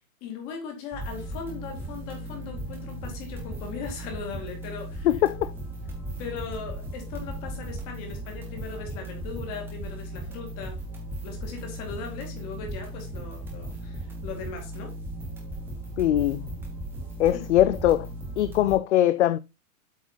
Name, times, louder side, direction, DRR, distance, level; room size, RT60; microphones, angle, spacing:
voice 1, 0.2-5.1 6.2-10.8 11.2-14.9 17.3-17.4, left 6 dB, 25° left, 2.3 m, -38 dB
sound 1, 0.9-18.7, right 1 dB, 5° right, 1.0 m, -37 dB
voice 2, 5.0-5.5 16.0-16.5 17.2-18.1 18.4-19.4, left 13 dB, 55° left, 0.5 m, -21 dB
8.1 x 4.8 x 3.9 m
supercardioid pair, 175°, 42 cm